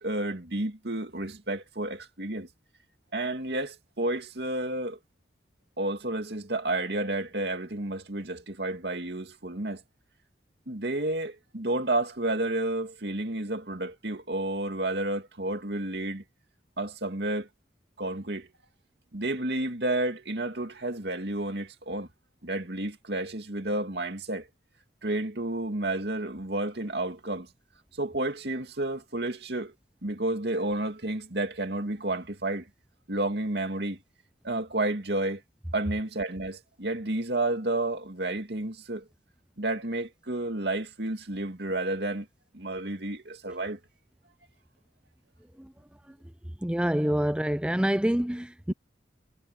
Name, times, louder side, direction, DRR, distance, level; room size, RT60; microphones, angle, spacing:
voice 1, 0.0-2.5 3.1-5.0 5.8-9.8 10.7-16.2 16.8-17.5 18.0-18.5 19.1-22.1 22.4-24.5 25.0-27.5 28.0-29.7 30.0-32.7 33.1-34.0 34.4-35.4 35.7-39.0 39.6-42.3 42.5-43.8, right 2 dB, 65° right, 2.5 m, -31 dB
voice 2, 46.6-48.7, equal, 5° right, 0.5 m, -26 dB
head